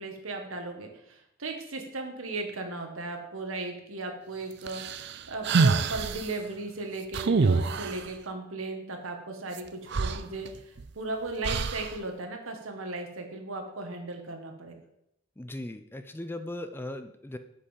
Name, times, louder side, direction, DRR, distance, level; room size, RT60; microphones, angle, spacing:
voice 1, 0.0-14.8, right 2 dB, 80° right, 3 dB, 1.8 m, -36 dB
sound 1, 4.7-6.3 7.1-8.1 9.6-9.7 9.9-10.9 11.4-12.0, right 4 dB, 55° right, 0.5 m, -26 dB
voice 2, 15.4-17.4, left 1 dB, 10° left, 9 dB, 0.4 m, -38 dB
8.2 x 5.5 x 7.4 m, 0.81 s
head